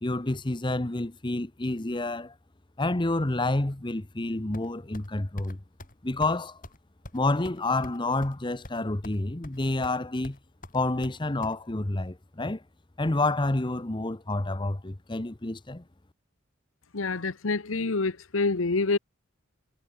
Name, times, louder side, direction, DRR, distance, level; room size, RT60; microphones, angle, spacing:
voice 1, 0.0-2.3 2.8-5.6 6.0-6.6 7.1-10.4 10.7-12.6 13.0-15.8, left 2 dB, 25° left, 1.0 m, -29 dB
sound 1, 4.5-5.1 5.4-5.5 5.8-6.0 6.2-6.4 6.6-6.8 7.1-8.4 8.6-9.2 9.4-10.0 10.2-11.6, left 1 dB, 40° left, 5.6 m, -44 dB
voice 2, 16.9-19.0, left 3 dB, 80° left, 1.1 m, -27 dB
head